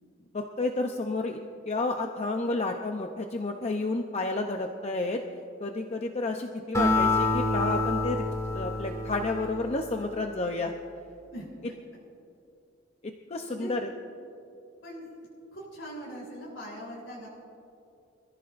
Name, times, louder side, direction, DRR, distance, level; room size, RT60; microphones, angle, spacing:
voice 1, 0.3-1.4 1.7-5.2 5.6-8.3 8.5-10.7 13.3-13.9, left 2 dB, 35° left, 4 dB, 0.7 m, -30 dB
Acoustic guitar, 6.7-10.3, left 2 dB, 15° left, 2.0 m, -28 dB
voice 2, 13.4-13.8 14.8-17.3, equal, 80° left, -5 dB, 3.7 m, -41 dB
25.5 x 15.0 x 2.6 m, 2.6 s
head